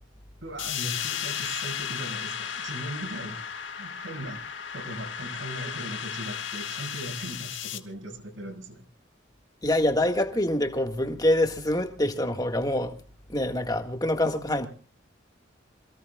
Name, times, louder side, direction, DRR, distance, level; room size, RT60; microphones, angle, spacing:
voice 1, 0.4-3.4 3.8-4.4 4.7-8.8, right 1 dB, 75° right, 5.8 m, -38 dB
sound 1, 0.6-7.8, left 8 dB, 75° left, 1.7 m, -34 dB
voice 2, 9.6-13.0 13.3-14.7, left 1 dB, 20° left, 1.7 m, -25 dB
27.5 x 18.0 x 2.4 m
head